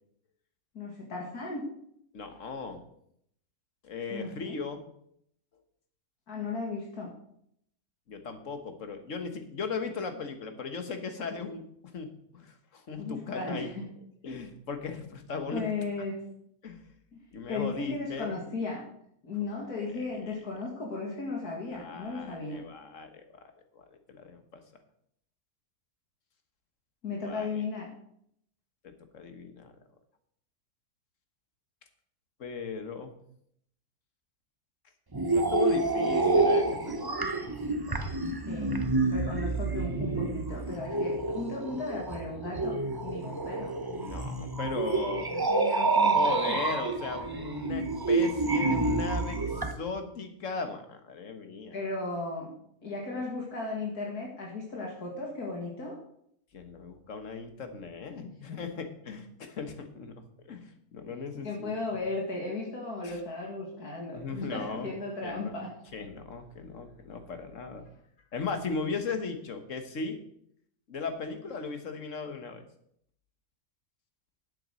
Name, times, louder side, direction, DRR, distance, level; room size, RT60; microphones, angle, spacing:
voice 1, 0.7-1.6 4.1-4.6 6.3-7.1 13.0-13.9 15.5-16.2 17.1-17.2 17.5-18.8 19.2-22.6 27.0-27.9 38.5-38.7 39.0-43.7 45.3-46.6 51.7-52.5 52.8-56.0 58.2-58.6 61.4-65.7, left 3 dB, 85° left, -2 dB, 2.6 m, -36 dB
voice 2, 2.1-2.8 3.8-4.8 8.1-13.7 14.2-15.6 16.6-16.8 17.3-18.3 19.8-20.3 21.7-23.2 23.7-23.8 24.1-24.6 27.2-27.6 28.8-29.7 32.4-33.1 35.3-37.6 37.9-38.1 43.9-45.3 46.1-51.7 56.5-60.1 60.5-61.7 63.0-63.2 64.1-64.9 65.2-65.5 65.9-67.9 68.3-70.2 70.9-72.6, left 4 dB, 55° left, 7 dB, 1.7 m, -37 dB
sound 1, 35.1-49.7, right 3 dB, 20° right, 0.8 m, -28 dB
10.0 x 8.3 x 6.3 m, 0.70 s
omnidirectional pair, 1.6 m